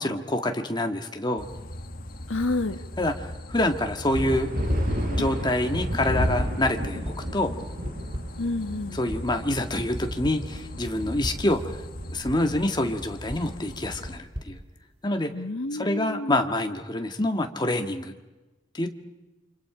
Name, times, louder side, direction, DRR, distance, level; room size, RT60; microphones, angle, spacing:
voice 1, 0.0-1.4 3.0-3.1 3.5-4.5 5.1-7.5 9.0-11.8 12.1-14.6 15.0-15.3 15.7-18.1 18.7-18.9, left 1 dB, 25° left, 4 dB, 1.7 m, -26 dB
sound 1, 1.4-14.2, left 1 dB, 50° left, 1.6 m, -39 dB
voice 2, 2.3-2.8 8.4-9.0 15.3-16.4, left 2 dB, 85° left, 9 dB, 1.4 m, -29 dB
sound 2, 4.1-14.1, equal, 45° right, 7.0 m, -31 dB
sound 3, 7.0-7.4 7.8-8.5 9.1-9.5 9.9-10.6 11.2-11.5 12.0-12.5 13.3-15.4, equal, 30° right, 2.6 m, -39 dB
29.0 x 26.5 x 5.0 m, 1.1 s
head